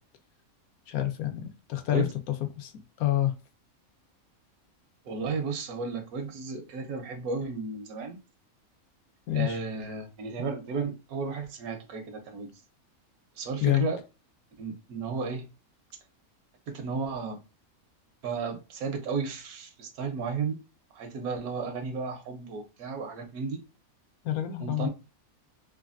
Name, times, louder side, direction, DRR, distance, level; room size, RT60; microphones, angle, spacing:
voice 1, 0.9-2.1 2.6-2.7 3.0-3.4 9.3-9.6 13.6-13.9 24.2-24.9, left 13 dB, 85° left, 1.1 m, -27 dB
voice 2, 5.0-8.2 9.3-12.5 13.4-14.0 14.6-15.5 16.7-17.4 18.2-20.6 20.9-23.6 24.6-24.9, right 4 dB, 85° right, 1.2 m, -33 dB
3.2 x 2.3 x 2.5 m
omnidirectional pair, 1.5 m